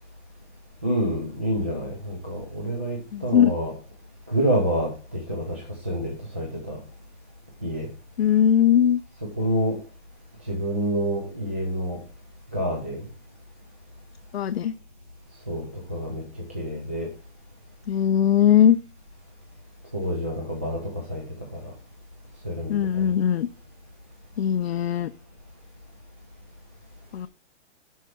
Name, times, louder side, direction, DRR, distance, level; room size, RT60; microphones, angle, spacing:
voice 1, 0.8-3.7 4.3-6.8 7.6-7.9 9.4-9.8 10.5-12.0 12.5-13.1 15.5-16.2 16.5-17.1 19.9-21.2 21.5-21.7 22.4-23.1, equal, 10° right, -3 dB, 0.4 m, -28 dB
voice 2, 3.1-3.5 8.2-9.0 14.3-14.7 17.9-18.8 22.7-23.5 24.4-25.1 27.1-27.3, left 9 dB, 60° left, 12 dB, 0.5 m, -20 dB
11.0 x 4.5 x 5.8 m, 0.37 s
hypercardioid pair, 170°, 37 cm